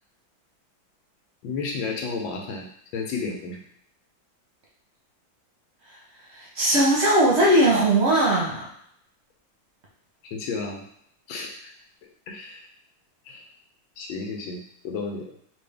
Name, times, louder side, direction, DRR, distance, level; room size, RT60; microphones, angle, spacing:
voice 1, 1.4-2.7 2.9-3.6 10.3-10.8 11.3-11.7 12.3-12.7 13.3-13.4 14.0-15.3, left 4 dB, 85° left, 1 dB, 1.5 m, -32 dB
voice 2, 6.6-8.6, right 1 dB, 50° right, -5 dB, 0.8 m, -19 dB
3.4 x 2.6 x 3.4 m, 0.69 s
omnidirectional pair, 2.1 m